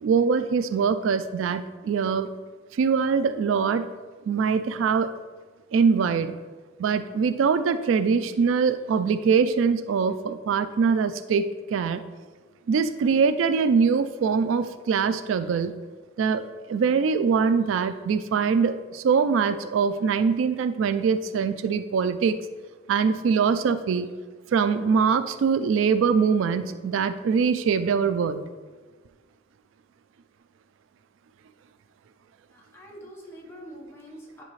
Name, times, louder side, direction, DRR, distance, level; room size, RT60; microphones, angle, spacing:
voice 1, 0.0-2.3 2.7-3.9 4.3-5.1 5.7-6.3 6.8-12.0 12.7-15.7 16.2-22.4 22.9-24.1 24.5-28.4, right 5 dB, 80° right, 11 dB, 0.3 m, -23 dB
voice 2, 32.5-34.4, equal, 15° left, -3 dB, 1.3 m, -44 dB
9.7 x 4.0 x 3.2 m, 1.4 s
head